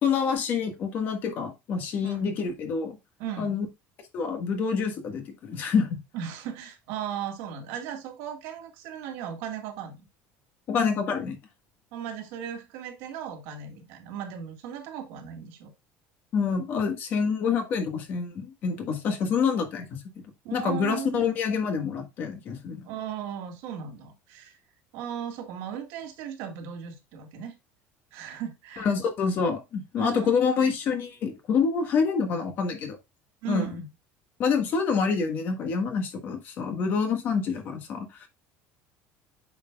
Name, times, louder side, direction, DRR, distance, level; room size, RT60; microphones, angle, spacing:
voice 1, 0.0-3.0 3.4-3.6 4.1-6.0 10.7-11.4 16.3-20.0 20.5-22.9 28.8-33.0 33.5-33.8 34.4-38.3, left 5 dB, 40° left, 1.5 m, -27 dB
voice 2, 3.2-3.6 6.1-10.0 11.9-15.7 20.4-21.2 22.8-24.5 24.9-27.5 28.1-28.9 30.0-30.3 33.4-33.8, right 8 dB, 65° right, 1.7 m, -37 dB
8.6 x 5.8 x 2.3 m
cardioid pair, 175°, 5 cm